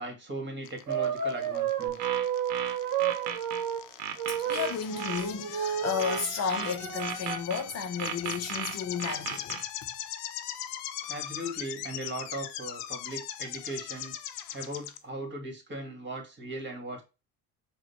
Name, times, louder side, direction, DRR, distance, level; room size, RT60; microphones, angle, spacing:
voice 1, 0.0-2.1 11.0-14.1 14.5-17.0, right 1 dB, 25° right, 1.9 m, -38 dB
sound 1, 0.7-15.0, left 12 dB, 85° left, 0.6 m, -40 dB
sound 2, 0.9-3.8 4.2-6.3 6.5-7.5 8.1-8.2, right 8 dB, 45° right, 1.1 m, -31 dB
sound 3, 1.9-3.6 4.0-5.3 6.0-7.6 8.0-9.6, right 9 dB, 80° right, 0.8 m, -35 dB
voice 2, 4.3-9.6, left 6 dB, 35° left, 0.7 m, -33 dB
4.9 x 2.4 x 4.1 m
supercardioid pair, 90°, 45 cm